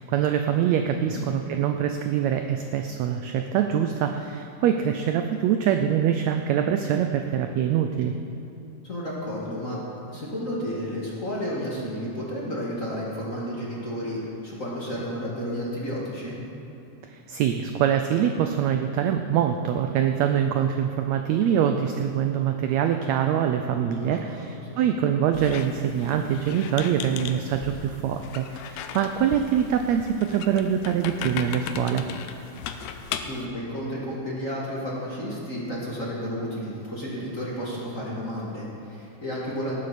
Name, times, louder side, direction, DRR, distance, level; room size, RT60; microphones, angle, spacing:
voice 1, 0.0-8.1 17.1-32.0, right 9 dB, 85° right, 6 dB, 1.6 m, -24 dB
voice 2, 0.9-1.2 8.8-9.8 10.1-16.4 24.0-24.8 33.2-39.8, equal, 30° left, -5 dB, 1.8 m, -32 dB
Squeak, 25.3-33.5, left 7 dB, 85° left, 2.3 m, -37 dB
18.5 x 9.8 x 4.2 m, 2.8 s
omnidirectional pair, 3.7 m